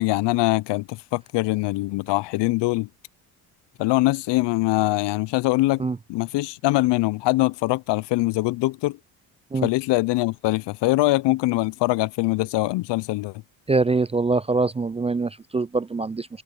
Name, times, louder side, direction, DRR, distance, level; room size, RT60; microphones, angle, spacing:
voice 1, 0.0-2.9 3.8-5.8 6.1-9.0 9.6-13.4, left 19 dB, 65° left, 0.7 m, -23 dB
voice 2, 13.7-16.3, right 3 dB, 15° right, 0.4 m, -23 dB
hypercardioid pair, 65°, 46 cm